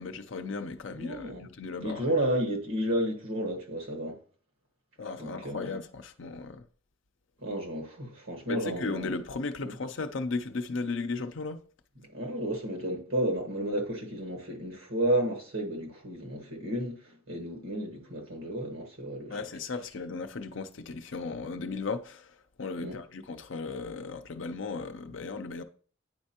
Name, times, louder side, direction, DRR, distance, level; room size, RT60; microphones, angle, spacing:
voice 1, 0.0-2.1 5.0-6.6 8.5-11.6 19.3-25.6, left 3 dB, 65° left, 0.6 m, -36 dB
voice 2, 0.9-1.4 1.8-4.2 5.2-5.7 7.4-9.1 9.6-9.7 12.1-19.4 22.8-23.0, right 1 dB, 80° right, 1.6 m, -32 dB
9.3 x 4.3 x 2.8 m
head